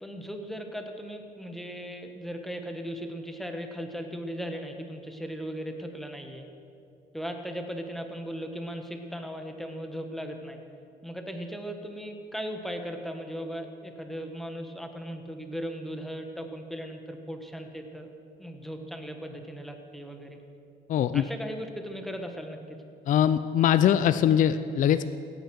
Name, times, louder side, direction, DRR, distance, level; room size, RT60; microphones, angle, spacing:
voice 1, 0.0-6.5 7.1-10.6 11.0-18.1 18.4-20.4 21.1-22.6, equal, ahead, 4 dB, 1.4 m, -37 dB
voice 2, 20.9-21.2 23.1-25.0, left 10 dB, 50° left, 12 dB, 0.5 m, -22 dB
16.5 x 9.6 x 6.3 m, 2.5 s
cardioid pair, 110°, 17 cm